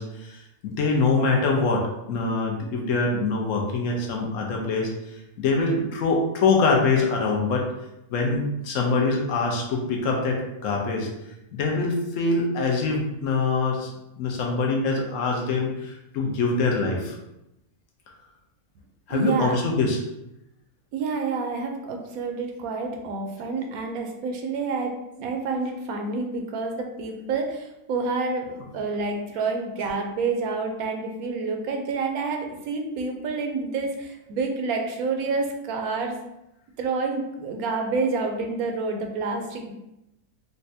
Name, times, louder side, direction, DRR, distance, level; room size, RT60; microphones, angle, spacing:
voice 1, 0.0-4.9 5.4-7.6 8.1-11.1 11.5-13.9 14.2-17.2 19.1-20.0, left 3 dB, 65° left, 0 dB, 1.0 m, -24 dB
voice 2, 19.1-19.6 20.9-36.1 36.8-39.7, right 4 dB, 80° right, 3 dB, 1.1 m, -28 dB
4.0 x 2.2 x 2.7 m, 0.88 s
omnidirectional pair, 1.5 m